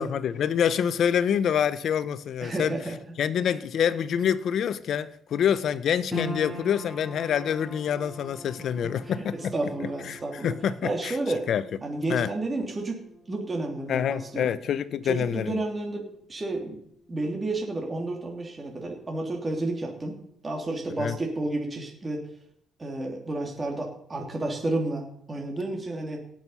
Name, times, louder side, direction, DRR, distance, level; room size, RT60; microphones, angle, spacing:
voice 1, 0.0-2.8 3.2-11.2 11.5-11.6 12.1-12.3 13.9-15.6 21.0-21.2, left 8 dB, 65° left, 0.7 m, -26 dB
voice 2, 2.4-2.8 9.5-10.5 10.8-11.4 11.8-14.5 15.1-16.8 17.1-20.2 20.4-22.2 22.8-26.2, right 2 dB, 25° right, 2.7 m, -31 dB
sound 1, 6.1-18.5 18.8-19.7 20.2-20.3, left 1 dB, 5° left, 5.6 m, -43 dB
18.0 x 6.4 x 5.6 m
cardioid pair, 90°, 0 cm